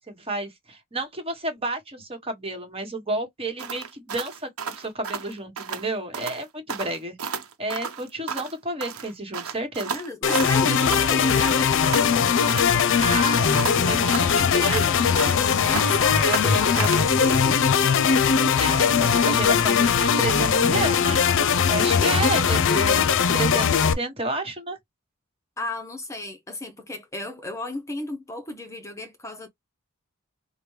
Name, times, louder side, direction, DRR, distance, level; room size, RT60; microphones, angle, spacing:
voice 1, 0.1-4.5 4.8-7.2 7.6-10.0 13.0-15.0 16.2-17.1 18.6-21.3 21.7-23.0 23.3-24.8, right 2 dB, 25° right, 1.2 m, -31 dB
sound 1, 3.6-5.9 6.1-6.4 6.7-8.6 8.8-11.1 11.4-12.7 13.0-15.5 15.7-17.1, right 6 dB, 80° right, 0.9 m, -33 dB
voice 2, 9.9-11.8 15.6-17.6 25.6-29.5, left 2 dB, 15° left, 0.7 m, -34 dB
sound 2, 10.2-23.9, left 6 dB, 60° left, 0.5 m, -20 dB
5.0 x 2.1 x 3.1 m
head